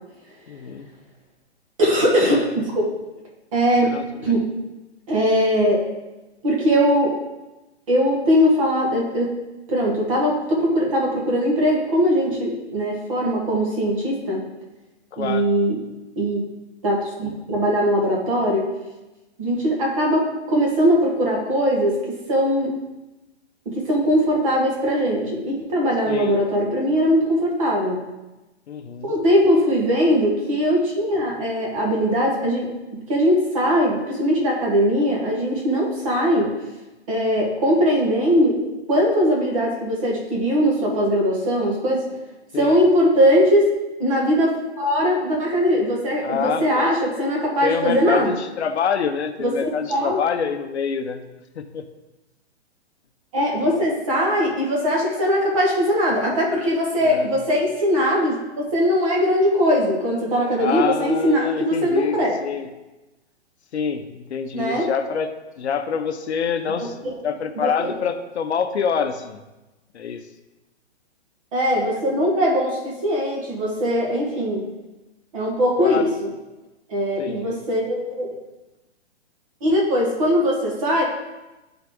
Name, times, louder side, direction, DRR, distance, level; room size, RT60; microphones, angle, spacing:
voice 1, 0.5-0.9 3.8-4.0 15.1-15.5 26.1-26.4 26.9-27.0 28.7-29.1 36.3-36.5 42.5-42.8 46.2-46.9 47.6-51.2 51.6-51.8 57.0-57.3 60.6-62.7 63.7-69.4 69.9-70.2 75.8-76.1 77.2-77.6, left 7 dB, 70° left, 8 dB, 0.8 m, -26 dB
voice 2, 1.8-2.8 3.5-4.0 4.2-4.5 5.1-5.8 6.4-7.2 7.9-9.3 9.7-14.4 15.2-15.8 16.2-16.5 16.8-18.8 19.4-22.8 23.6-28.0 29.0-36.6 37.1-38.5 38.9-42.1 42.5-43.7 44.0-48.3 49.4-50.2 53.3-62.3 64.5-64.9 66.8-67.1 67.5-67.9 71.5-74.6 75.3-76.3 76.9-78.4 79.6-81.0, equal, 30° right, -2 dB, 1.5 m, -20 dB
10.5 x 4.0 x 3.6 m, 1.0 s
hypercardioid pair, 175°, 34 cm